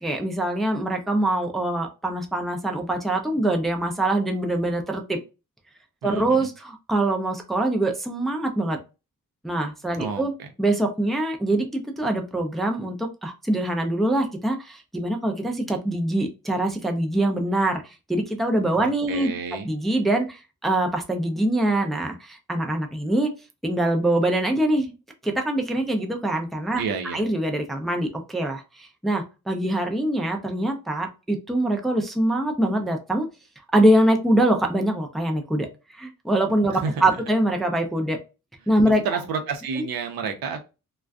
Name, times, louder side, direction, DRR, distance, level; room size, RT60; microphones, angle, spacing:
voice 1, 0.0-5.2 6.0-8.8 9.4-10.3 10.6-19.3 19.6-23.3 23.6-24.9 25.2-26.8 27.1-33.3 33.7-38.2 38.7-39.0, right 1 dB, ahead, 2 dB, 0.4 m, -24 dB
voice 2, 6.0-6.5 9.9-10.5 18.8-19.7 26.8-27.2 36.7-37.1 39.0-40.7, right 5 dB, 85° right, 6 dB, 0.6 m, -30 dB
2.4 x 2.2 x 2.3 m, 0.30 s
cardioid pair, 90°, 35 cm